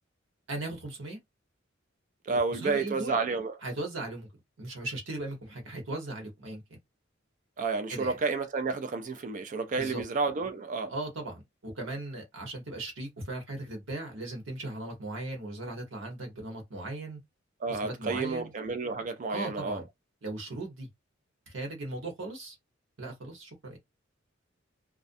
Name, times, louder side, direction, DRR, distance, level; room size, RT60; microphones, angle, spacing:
voice 1, 0.5-1.2 2.5-3.2 3.6-4.3 4.6-6.8 7.9-8.2 9.8-10.0 10.9-17.2 17.7-18.5 19.3-19.9 20.2-20.9 21.5-22.6 23.0-23.8, right 2 dB, 75° right, 1.1 m, -38 dB
voice 2, 2.3-3.5 7.6-10.9 17.6-19.8, right 4 dB, 40° right, 0.4 m, -31 dB
2.5 x 2.1 x 2.5 m
head